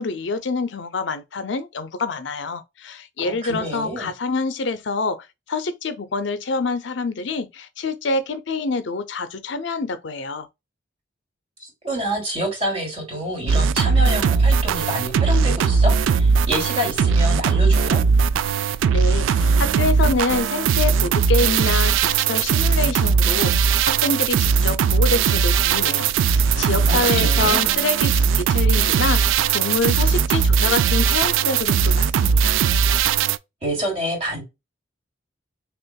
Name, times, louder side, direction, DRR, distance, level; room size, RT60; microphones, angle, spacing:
voice 1, 0.0-10.5 18.9-32.5, left 3 dB, 65° left, 0.5 m, -26 dB
voice 2, 3.2-4.1 11.6-18.0 26.9-27.7 33.6-34.4, equal, 35° right, 2.7 m, -27 dB
sound 1, 13.5-33.4, right 6 dB, 85° right, 0.3 m, -19 dB
6.3 x 2.4 x 2.2 m
head